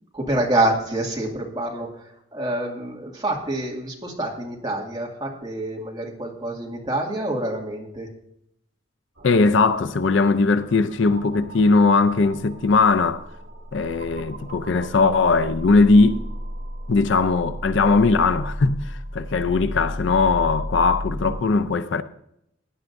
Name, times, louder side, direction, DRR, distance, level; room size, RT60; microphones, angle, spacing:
voice 1, 0.1-8.1, right 1 dB, 20° right, 2.1 m, -27 dB
voice 2, 9.2-13.2 13.7-16.2 16.9-22.0, left 3 dB, 65° left, 0.5 m, -19 dB
sound 1, 9.2-21.4, equal, 60° right, 2.3 m, -35 dB
16.5 x 9.8 x 2.6 m
head